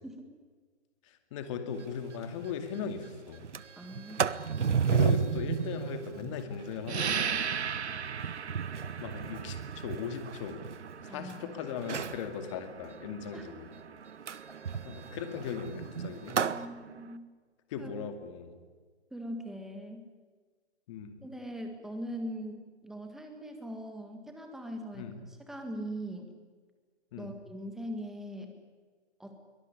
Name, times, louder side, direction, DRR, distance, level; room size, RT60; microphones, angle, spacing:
voice 1, 1.0-3.5 4.8-7.6 9.0-10.6 11.0-13.7 14.9-16.4 17.7-18.6 20.9-21.2 24.9-25.2 27.1-27.3, left 7 dB, 25° left, 7 dB, 2.3 m, -38 dB
Sliding door, 1.8-1.9 2.2-2.3 2.7-3.0 3.3-11.3 11.8-12.3 14.3-16.7, right 6 dB, 90° right, 1.2 m, -33 dB
voice 2, 3.7-4.4 11.1-11.6 13.3-13.5 16.4-17.2 17.8-17.9 19.1-20.1 21.2-26.3 27.2-28.5 29.2-29.4, equal, ahead, 4 dB, 1.7 m, -41 dB
sound 1, 6.9-17.2, right 7 dB, 70° right, 1.5 m, -39 dB
23.5 x 19.0 x 9.9 m, 1.5 s
hypercardioid pair, 160°, 34 cm